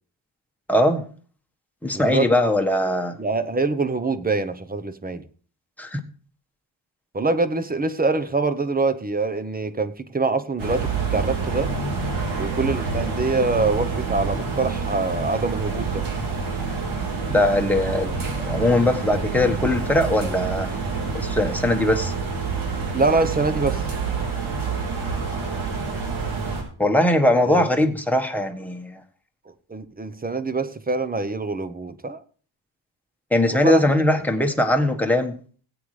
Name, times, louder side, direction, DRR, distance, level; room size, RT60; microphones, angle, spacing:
voice 1, 0.7-1.0 1.8-3.2 5.8-6.0 17.3-20.7 21.1-22.1 26.8-29.0 33.3-35.4, left 1 dB, 5° left, 1.3 m, -20 dB
voice 2, 1.9-2.5 3.2-5.2 7.1-11.7 12.4-16.0 22.9-23.9 27.4-27.7 29.5-32.2 33.5-34.2, right 3 dB, 20° right, 0.9 m, -25 dB
sound 1, 10.6-26.6, right 4 dB, 85° right, 4.0 m, -27 dB
17.0 x 8.8 x 3.2 m
wide cardioid pair, 150°, 47 cm